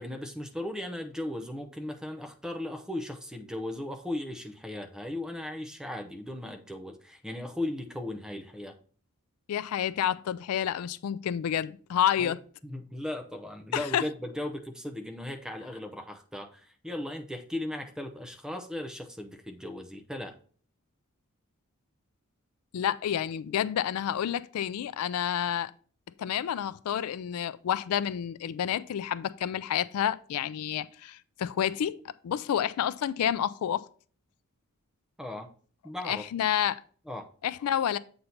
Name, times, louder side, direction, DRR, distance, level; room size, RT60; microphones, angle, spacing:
voice 1, 0.0-8.7 12.2-12.3 12.6-20.4 35.2-35.5 35.8-36.2 37.1-37.3, left 1 dB, 5° right, 0.6 m, -37 dB
voice 2, 9.5-12.4 13.7-14.0 22.7-25.7 26.2-33.9 36.0-36.8 37.4-38.0, left 9 dB, 80° left, 0.3 m, -29 dB
7.7 x 2.7 x 5.7 m
head